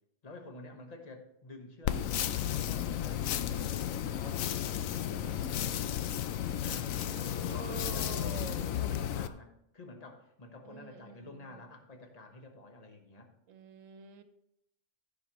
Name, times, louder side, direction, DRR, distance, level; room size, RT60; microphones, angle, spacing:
voice 1, 0.2-4.6 6.6-13.3, left 2 dB, 30° left, 3 dB, 1.2 m, -50 dB
sound 1, 1.8-9.3, left 10 dB, 90° left, 1.0 m, -33 dB
voice 2, 6.5-8.8 10.6-11.7 13.5-14.2, right 7 dB, 80° right, 9 dB, 1.2 m, -47 dB
15.5 x 5.3 x 3.0 m, 0.80 s
omnidirectional pair, 1.4 m